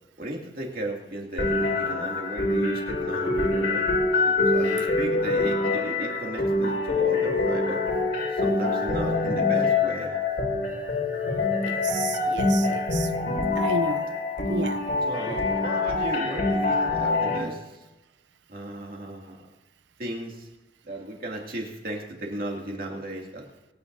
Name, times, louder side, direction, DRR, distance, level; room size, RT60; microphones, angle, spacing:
voice 1, 0.2-3.9 4.4-7.8 8.3-10.2 15.0-17.8 18.5-19.4 20.0-20.5 20.8-23.4, right 1 dB, 50° right, 2.5 m, -35 dB
sound 1, 1.4-17.4, left 3 dB, 60° left, 3.2 m, -25 dB
voice 2, 11.6-13.1 13.6-14.2 14.5-14.8, right 4 dB, 75° right, 0.6 m, -32 dB
25.0 x 9.7 x 2.7 m
head